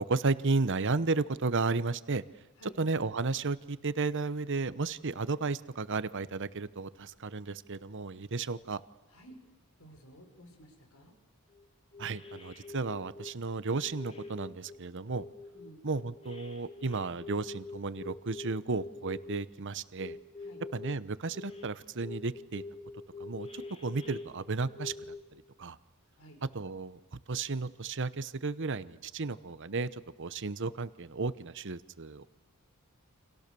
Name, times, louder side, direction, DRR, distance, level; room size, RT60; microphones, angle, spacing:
voice 1, 0.0-2.2 2.8-8.8 12.0-15.2 15.8-20.2 20.7-22.6 23.2-25.1 25.6-25.8 26.5-32.2, right 3 dB, 55° right, 15 dB, 1.0 m, -33 dB
voice 2, 9.1-9.4 9.8-11.1 15.5-15.8 20.4-20.6 26.2-26.4, equal, 70° left, 4 dB, 6.0 m, -53 dB
sound 1, 11.5-11.6 11.9-13.3 13.8-14.7 15.1-19.4 20.0-20.9 21.3-21.7 22.0-25.2, left 3 dB, 30° left, 3.1 m, -45 dB
30.0 x 26.5 x 7.0 m, 1.0 s
head